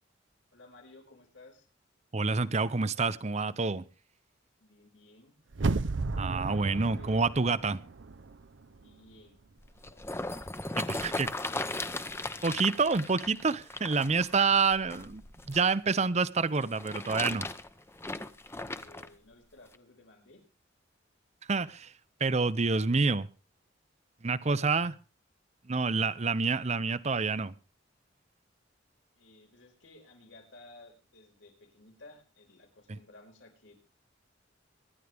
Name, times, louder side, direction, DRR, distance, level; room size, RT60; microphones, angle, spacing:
voice 1, 0.5-1.7 4.6-5.3 6.5-7.2 8.7-9.4 9.9-10.0 12.5-12.7 18.7-20.4 24.7-24.8 29.2-33.8, left 2 dB, 80° left, 2 dB, 5.0 m, -56 dB
voice 2, 2.1-3.8 6.2-7.8 10.9-11.3 12.4-17.5 21.5-21.9 22.2-23.3 24.2-24.9 25.7-27.5 32.9-33.0, right 4 dB, 35° right, 16 dB, 0.7 m, -28 dB
sound 1, 5.5-8.5 8.8-8.9, right 3 dB, 75° right, 0.7 m, -33 dB
sound 2, 9.6-15.7 16.6-19.1 19.7-19.8, left 2 dB, 15° left, 0.8 m, -37 dB
25.0 x 11.0 x 3.5 m, 0.37 s
head